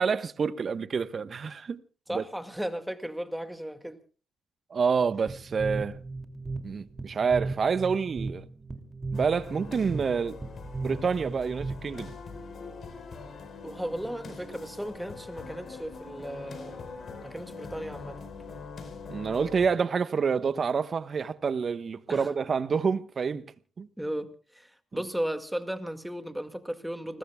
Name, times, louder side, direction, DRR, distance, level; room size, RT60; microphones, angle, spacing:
voice 1, 0.0-1.8 2.1-2.2 4.7-6.0 6.6-8.4 9.1-10.4 10.8-12.2 19.1-23.4 23.8-23.9, right 5 dB, 50° right, 1.1 m, -28 dB
voice 2, 2.1-4.0 13.6-16.8 17.2-18.2 22.1-22.3 24.0-27.2, equal, 5° right, 2.1 m, -35 dB
sound 1, 5.3-12.1, right 3 dB, 25° right, 2.8 m, -36 dB
sound 2, 9.1-19.7, left 4 dB, 55° left, 4.7 m, -43 dB
29.5 x 20.5 x 2.3 m
supercardioid pair, 55°, 0 cm